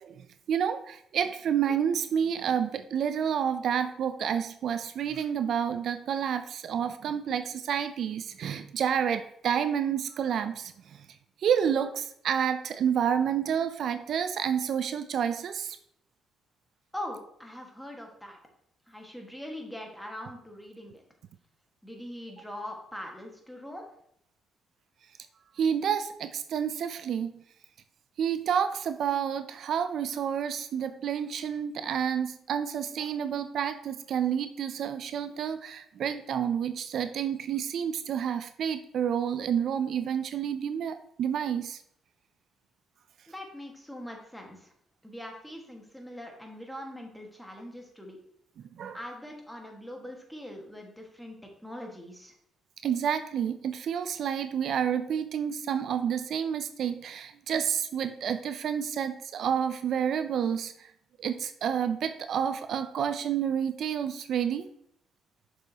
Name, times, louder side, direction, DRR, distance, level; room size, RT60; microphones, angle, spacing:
voice 1, 0.0-11.1 11.4-15.8 25.6-27.4 28.2-41.8 48.8-49.0 52.8-60.9 61.2-64.7, right 8 dB, 65° right, 10 dB, 0.4 m, -29 dB
voice 2, 16.9-18.4 18.9-21.0 21.8-23.8 43.3-44.7 45.0-48.2 48.9-52.3, left 1 dB, ahead, 1 dB, 1.5 m, -42 dB
6.9 x 6.2 x 2.8 m, 0.71 s
cardioid pair, 90°, 0 cm